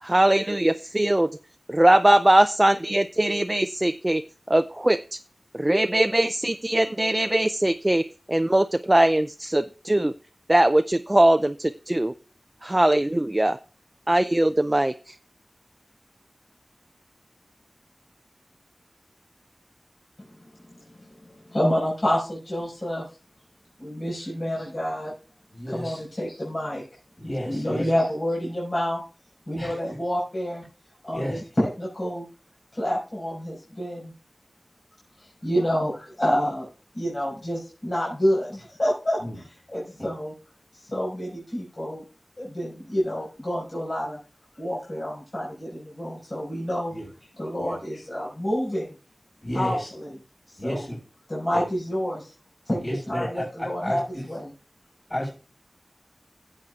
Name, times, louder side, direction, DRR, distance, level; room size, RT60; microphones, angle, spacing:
voice 1, 0.0-1.3 1.7-4.2 4.5-5.2 5.5-8.0 8.3-10.1 10.5-12.1 12.6-13.6 14.1-15.2, right 1 dB, 25° right, 10 dB, 0.4 m, -21 dB
voice 2, 20.7-23.1 23.8-25.1 25.7-26.8 27.4-29.0 29.5-30.6 31.0-32.3 32.7-34.1 35.2-36.7 36.9-39.2 39.7-40.3 40.8-42.0 42.4-44.2 44.6-46.9 47.4-48.9 49.5-50.1 50.5-50.8 51.3-52.3 52.7-52.8 53.1-54.0 54.3-54.5, equal, 55° left, -5 dB, 5.4 m, -28 dB
voice 3, 25.5-26.0 27.2-27.9 29.5-29.8 31.1-31.4 39.2-39.4 40.0-40.1 46.9-47.1 47.6-47.8 49.4-49.9 50.6-51.0 51.5-51.6 52.8-54.3 55.1-55.3, equal, 35° left, -7 dB, 5.4 m, -32 dB
16.5 x 7.7 x 2.4 m, 0.34 s
wide cardioid pair, 45°, 0 cm